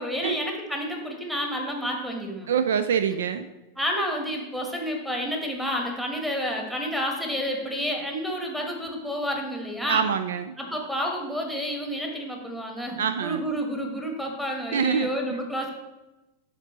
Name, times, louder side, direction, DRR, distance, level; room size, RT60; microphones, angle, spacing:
voice 1, 0.0-2.5 3.8-10.0 10.6-15.7, equal, 5° right, 0 dB, 1.3 m, -30 dB
voice 2, 2.5-3.5 9.9-10.6 13.0-13.4 14.7-15.4, right 7 dB, 60° right, 10 dB, 0.3 m, -25 dB
10.5 x 3.9 x 3.1 m, 1.0 s
figure-of-eight pair, 90°, 0 cm